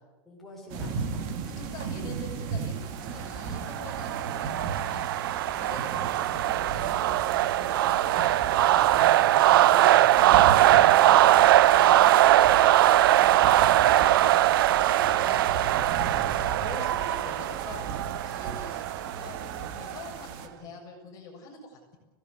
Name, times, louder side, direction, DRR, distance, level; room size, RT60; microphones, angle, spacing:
voice 1, 0.3-1.7 8.6-10.6 14.3-14.6 18.1-18.4 20.5-20.7, left 1 dB, ahead, -5 dB, 6.9 m, -46 dB
sound 1, 0.7-20.5, right 5 dB, 40° right, 2.9 m, -36 dB
voice 2, 1.6-5.1 5.6-8.2 9.7-9.9 10.5-12.5 13.1-14.1 14.5-15.7 16.0-17.9 18.2-22.0, left 3 dB, 30° left, 1 dB, 7.4 m, -45 dB
sound 2, 3.4-20.0, right 14 dB, 70° right, 0.8 m, -21 dB
25.5 x 18.5 x 8.4 m, 1.2 s
supercardioid pair, 165°, 12 cm